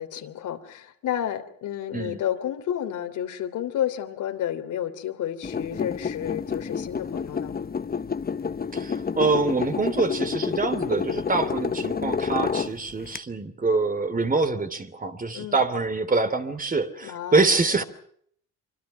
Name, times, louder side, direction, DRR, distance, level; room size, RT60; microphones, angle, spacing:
voice 1, 0.0-7.5 15.3-15.6 17.0-17.8, left 10 dB, 80° left, 3.3 m, -31 dB
sound 1, 5.4-13.2, left 6 dB, 30° left, 1.1 m, -29 dB
voice 2, 8.7-17.8, right 3 dB, 30° right, 2.9 m, -25 dB
25.5 x 25.0 x 5.7 m
cardioid pair, 90°, 30 cm